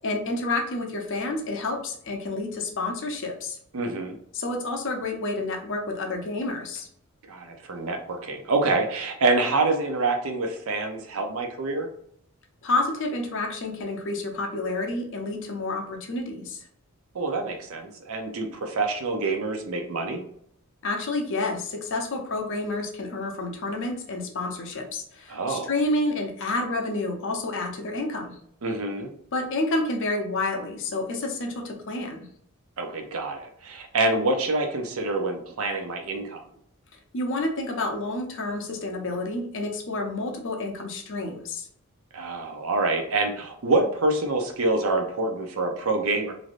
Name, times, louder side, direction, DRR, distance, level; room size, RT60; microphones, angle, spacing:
voice 1, 0.0-3.6 4.3-6.9 12.6-16.7 20.8-28.4 29.3-32.3 37.1-41.7, left 2 dB, 60° left, 3 dB, 0.6 m, -29 dB
voice 2, 3.7-4.2 7.3-11.9 17.1-20.2 25.3-25.7 28.6-29.1 32.8-36.4 42.1-46.3, right 2 dB, 65° right, 4 dB, 0.6 m, -26 dB
3.2 x 2.6 x 2.5 m, 0.66 s
head